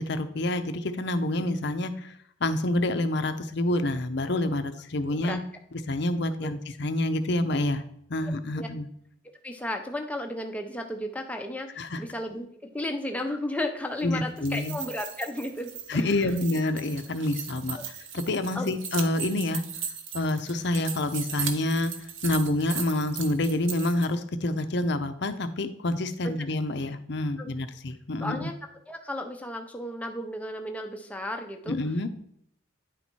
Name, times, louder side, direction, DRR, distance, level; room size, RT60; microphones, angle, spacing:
voice 1, 0.0-2.1 2.4-5.4 5.9-7.8 8.1-8.9 11.8-12.0 14.0-14.8 15.9-17.8 18.1-19.6 20.1-21.9 22.2-28.5 31.7-32.1, left 1 dB, 55° left, 10 dB, 0.6 m, -27 dB
voice 2, 9.4-16.4 17.7-17.8 18.5-18.7 26.2-26.3 27.4-27.5 28.2-28.5 28.9-31.8, left 1 dB, 5° left, 4 dB, 0.6 m, -34 dB
sound 1, 14.2-24.1, right 7 dB, 70° right, 0.9 m, -38 dB
9.9 x 4.2 x 4.5 m, 0.71 s
head